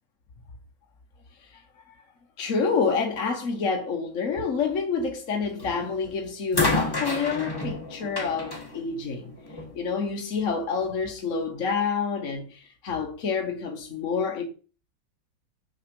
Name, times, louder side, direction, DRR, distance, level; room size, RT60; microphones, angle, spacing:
voice 1, 2.4-9.3 9.7-14.4, left 5 dB, 50° left, 1.2 m, -28 dB
sound 1, 5.6-5.9 6.5-9.8 10.8-10.9, left 2 dB, 15° left, 1.2 m, -30 dB
6.1 x 4.8 x 5.2 m
omnidirectional pair, 1.9 m